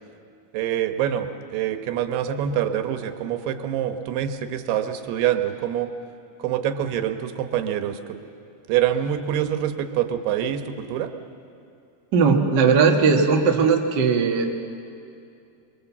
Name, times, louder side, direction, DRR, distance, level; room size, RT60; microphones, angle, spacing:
voice 1, 0.5-5.9 6.4-8.2 8.7-11.1, right 10 dB, 90° right, 7 dB, 3.1 m, -25 dB
voice 2, 12.1-14.5, right 5 dB, 45° right, 1 dB, 1.4 m, -18 dB
24.0 x 24.0 x 7.3 m, 2.6 s
omnidirectional pair, 4.5 m